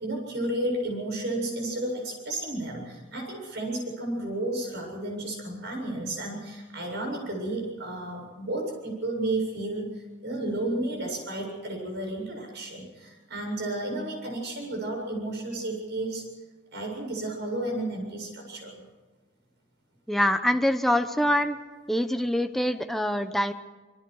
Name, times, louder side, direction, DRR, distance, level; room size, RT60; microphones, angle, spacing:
voice 1, 0.0-9.9 10.2-16.2 16.7-18.7, right 1 dB, 55° right, 1 dB, 7.7 m, -32 dB
voice 2, 20.1-21.6 21.9-23.5, equal, ahead, 7 dB, 0.9 m, -25 dB
26.5 x 23.0 x 4.8 m, 1.3 s
head